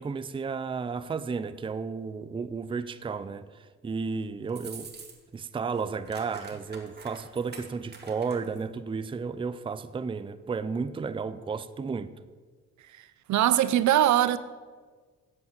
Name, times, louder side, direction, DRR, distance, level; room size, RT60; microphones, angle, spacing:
voice 1, 0.0-4.9 5.3-12.1, right 5 dB, 15° right, 0.5 m, -33 dB
sound 1, 4.5-5.4 5.7-8.6, right 4 dB, 35° right, 1.9 m, -46 dB
voice 2, 13.3-14.4, right 12 dB, 70° right, 0.6 m, -21 dB
8.1 x 7.6 x 7.1 m
cardioid pair, 90°, 30 cm